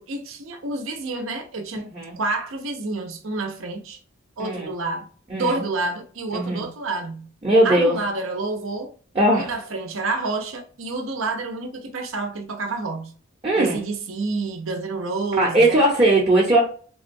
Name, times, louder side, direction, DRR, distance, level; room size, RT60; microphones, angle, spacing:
voice 1, 0.0-1.8 2.2-4.0 4.4-5.1 5.3-7.3 7.6-8.9 9.3-13.1 13.6-15.9, right 3 dB, 75° right, 0.6 m, -28 dB
voice 2, 1.7-2.1 4.4-4.7 5.3-5.6 6.3-6.6 7.4-8.0 9.1-9.5 13.4-13.8 15.4-16.6, right 1 dB, 25° right, 0.7 m, -19 dB
3.6 x 2.2 x 2.5 m
head